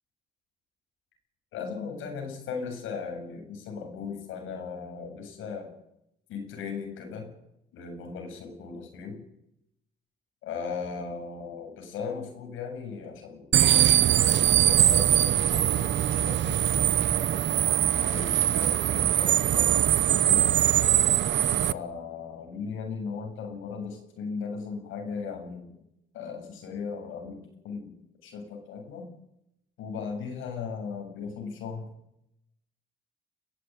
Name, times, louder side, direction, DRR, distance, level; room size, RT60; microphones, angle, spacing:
voice 1, 1.5-5.7 6.3-7.3 7.7-9.2 10.4-17.0 17.9-20.5 21.7-25.7 26.1-29.1 29.8-31.9, left 5 dB, 90° left, 3 dB, 7.6 m, -37 dB
sound 1, 13.5-21.7, right 11 dB, 65° right, 1.0 m, -22 dB
22.0 x 15.0 x 9.5 m, 0.82 s
cardioid pair, 90°, 20 cm